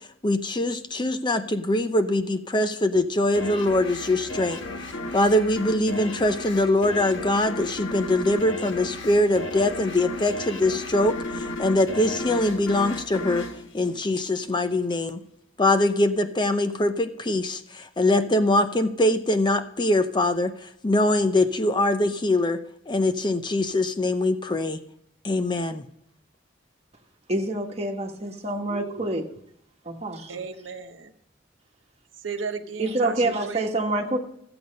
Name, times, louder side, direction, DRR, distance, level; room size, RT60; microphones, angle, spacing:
voice 1, 0.2-4.6 5.1-13.5 13.7-15.2 15.6-22.6 22.9-24.8 25.2-25.8, left 1 dB, 25° left, 9 dB, 0.6 m, -23 dB
sound 1, 3.3-14.6, left 1 dB, 85° left, 1.4 m, -34 dB
voice 2, 27.3-29.3 29.8-30.4 32.8-34.2, right 2 dB, 35° right, 2 dB, 1.5 m, -27 dB
voice 3, 28.7-29.0 30.3-31.1 32.2-33.7, right 5 dB, 85° right, 8 dB, 0.9 m, -35 dB
14.5 x 7.9 x 5.3 m, 0.76 s
head